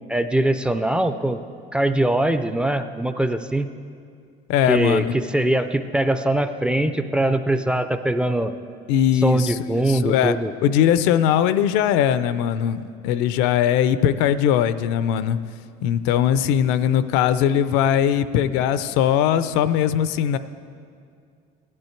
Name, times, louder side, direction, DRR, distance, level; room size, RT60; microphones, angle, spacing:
voice 1, 0.1-1.4 1.7-3.7 4.7-5.0 5.3-8.5 9.2-10.5, right 1 dB, 5° right, 9 dB, 0.3 m, -22 dB
voice 2, 4.5-5.1 8.9-10.3 10.6-15.4 15.8-20.4, left 9 dB, 85° left, 14 dB, 0.6 m, -20 dB
15.5 x 11.0 x 4.5 m, 2.3 s
cardioid pair, 150°, 18 cm